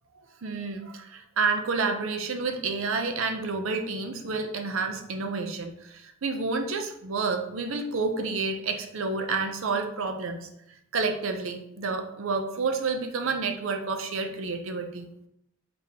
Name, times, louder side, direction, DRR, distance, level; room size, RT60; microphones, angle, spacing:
voice 1, 0.4-10.5 10.9-15.1, right 4 dB, 70° right, 6 dB, 0.5 m, -29 dB
4.1 x 3.4 x 2.8 m, 0.77 s
head